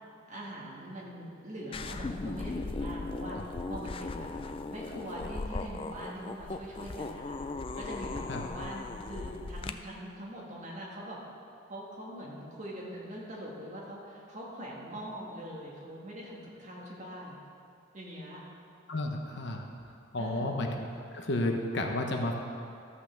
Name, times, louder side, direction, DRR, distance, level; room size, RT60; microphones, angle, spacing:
voice 1, 0.3-4.3 4.7-7.4 7.7-11.2 11.7-17.4 17.9-18.4 20.2-20.5, equal, 35° right, -4 dB, 2.1 m, -42 dB
sound 1, 1.7-9.7, left 3 dB, 25° left, 0.3 m, -38 dB
voice 2, 18.9-19.6 20.1-20.8 21.1-22.3, left 1 dB, 55° left, 2 dB, 1.0 m, -32 dB
13.0 x 5.7 x 7.1 m, 2.5 s
head